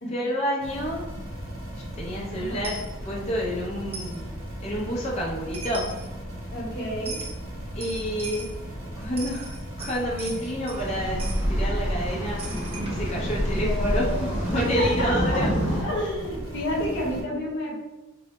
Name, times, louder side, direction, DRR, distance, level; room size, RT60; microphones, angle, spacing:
voice 1, 0.1-1.0 1.7-5.9 7.8-8.5 8.9-15.5, equal, 30° left, -4 dB, 0.5 m, -29 dB
sound 1, 0.6-17.2, equal, 70° right, 0.9 m, -37 dB
voice 2, 2.3-2.7 6.5-7.2 10.3-10.4 13.6-15.4 15.7-17.8, equal, 55° left, -3 dB, 0.9 m, -30 dB
Coin (dropping), 2.6-2.9 3.9-4.2 5.3-5.4 5.5-6.1 7.0-7.4 7.8-8.6 9.0-10.9 11.2-11.4 12.4-15.0, right 3 dB, 30° right, 0.4 m, -40 dB
sound 2, 10.7-15.8, equal, 10° right, 0.7 m, -27 dB
3.1 x 2.0 x 2.9 m, 1.1 s
head